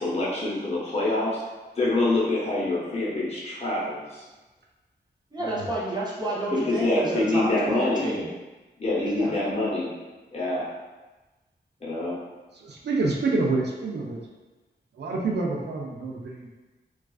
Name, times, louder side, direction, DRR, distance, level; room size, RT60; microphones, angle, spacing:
voice 1, 0.0-1.4 1.8-4.2 6.7-8.1 8.8-9.9 10.3-10.7 11.8-12.2, left 2 dB, 35° left, -7 dB, 0.7 m, -26 dB
voice 2, 5.3-8.3 9.2-9.3, right 1 dB, 25° right, -6 dB, 0.6 m, -29 dB
voice 3, 12.5-14.2 14.9-16.6, right 3 dB, 75° right, -1 dB, 0.4 m, -28 dB
2.3 x 2.3 x 2.3 m, 1.2 s
wide cardioid pair, 90°, 18 cm